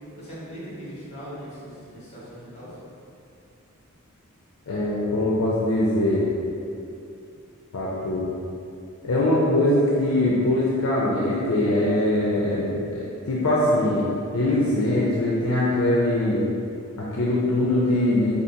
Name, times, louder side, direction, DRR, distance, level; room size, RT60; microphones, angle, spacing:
voice 1, 0.1-2.8, equal, 35° left, -9 dB, 1.5 m, -39 dB
voice 2, 4.7-6.3 7.7-8.3 9.0-14.1 14.3-16.4 17.0-18.3, left 1 dB, 70° left, -5 dB, 0.5 m, -22 dB
5.0 x 2.5 x 2.7 m, 2.6 s
head